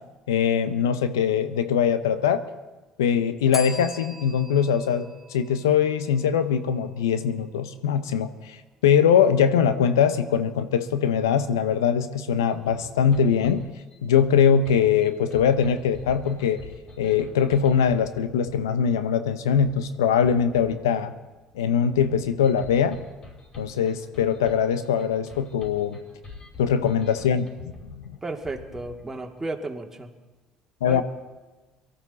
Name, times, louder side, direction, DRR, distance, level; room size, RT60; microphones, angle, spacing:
voice 1, 0.3-2.4 3.0-8.6 8.8-13.6 14.0-16.6 17.0-21.1 21.5-23.0 23.6-26.0 26.6-28.0 30.8-31.0, left 7 dB, 85° left, 11 dB, 0.9 m, -22 dB
Bell, 3.5-6.3, left 1 dB, 5° right, 4.2 m, -41 dB
sound 1, 12.5-29.4, left 3 dB, 45° left, 6.0 m, -46 dB
voice 2, 28.2-30.1 30.8-31.0, right 2 dB, 20° right, 2 dB, 2.2 m, -33 dB
23.0 x 13.0 x 4.1 m, 1.2 s
hypercardioid pair, 60°, 2 cm